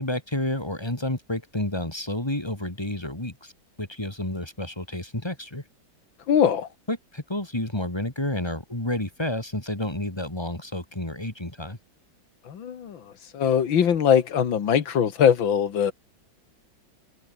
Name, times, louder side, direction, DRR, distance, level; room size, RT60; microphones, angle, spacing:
voice 1, 0.0-3.5 3.8-5.6 6.9-11.8, left 1 dB, 15° left, 2.9 m, -30 dB
voice 2, 6.3-6.7 12.5-13.0 13.3-15.9, left 8 dB, 80° left, 2.4 m, -21 dB
omnidirectional pair, 2.1 m